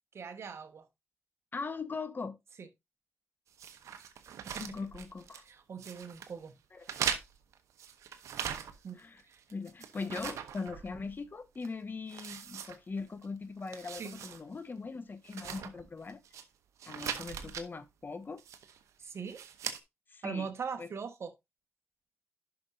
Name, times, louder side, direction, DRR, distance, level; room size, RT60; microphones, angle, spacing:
voice 1, 0.1-0.8 2.6-2.7 4.4-4.6 5.4-6.5 8.8-9.0 9.3-9.4 14.0-14.1 19.0-19.4 20.2-21.3, right 6 dB, 60° right, 1.3 m, -40 dB
voice 2, 1.5-2.4 4.6-5.4 6.7-7.0 8.9-9.2 9.5-16.2 16.9-18.4 20.1-20.5 20.8-20.9, left 4 dB, 40° left, 1.0 m, -40 dB
sound 1, 3.6-5.5 5.8-6.3 6.8-9.0 9.3-11.2 11.6-11.7 12.1-13.3 13.6-14.4 14.7-14.8 15.2-16.4 16.8-17.7 18.4-18.8 19.3-19.8, right 8 dB, 80° right, 0.9 m, -40 dB
10.0 x 6.0 x 2.7 m
cardioid pair, 60°, 5 cm